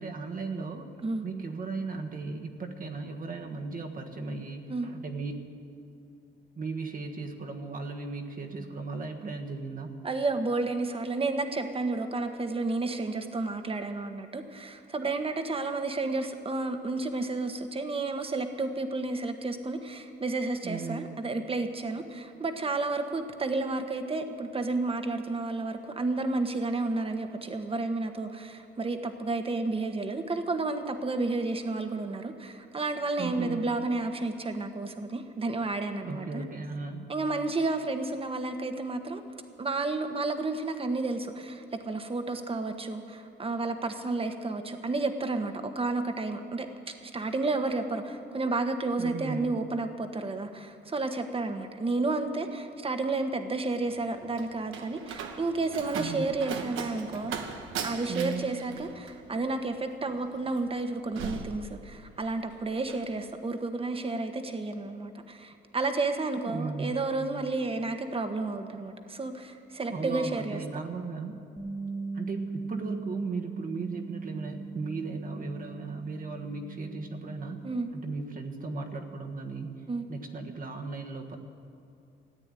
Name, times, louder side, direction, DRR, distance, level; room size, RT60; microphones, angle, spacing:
voice 1, 0.0-0.9 1.2-5.3 6.5-10.0 20.6-21.1 33.2-33.6 36.0-37.1 49.0-49.6 55.9-56.3 58.1-58.5 66.5-67.0 69.9-71.4 72.1-77.6 77.9-81.4, right 4 dB, 45° right, 3 dB, 1.5 m, -36 dB
voice 2, 10.0-36.4 37.1-39.2 39.6-46.7 47.0-57.3 57.8-70.6 77.6-77.9 79.9-80.0, right 3 dB, 30° right, 7 dB, 1.3 m, -31 dB
Slam, 53.9-62.3 62.6-63.1, right 6 dB, 85° right, 1.2 m, -39 dB
Bass guitar, 71.6-77.8, right 3 dB, 5° right, 1.5 m, -39 dB
14.5 x 9.0 x 9.1 m, 2.6 s
cardioid pair, 90°, 20 cm